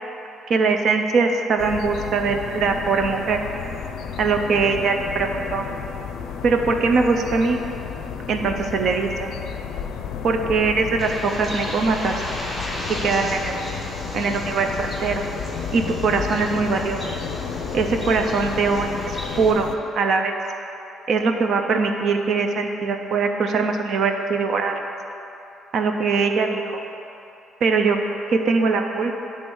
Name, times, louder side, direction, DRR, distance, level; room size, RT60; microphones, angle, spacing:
voice 1, 0.5-3.4 4.2-5.6 6.4-7.6 8.3-9.3 10.2-12.2 12.9-15.2 15.7-17.0 17.7-19.7 19.9-20.4 21.1-24.7 25.7-26.8 27.6-28.0 28.3-29.1, right 4 dB, 50° right, 4 dB, 0.5 m, -22 dB
sound 1, 1.6-19.8, left 7 dB, 70° left, 0.5 m, -32 dB
Bird, 11.0-19.5, equal, 5° right, 1.0 m, -35 dB
9.3 x 3.5 x 6.1 m, 2.9 s
cardioid pair, 165°, 0 cm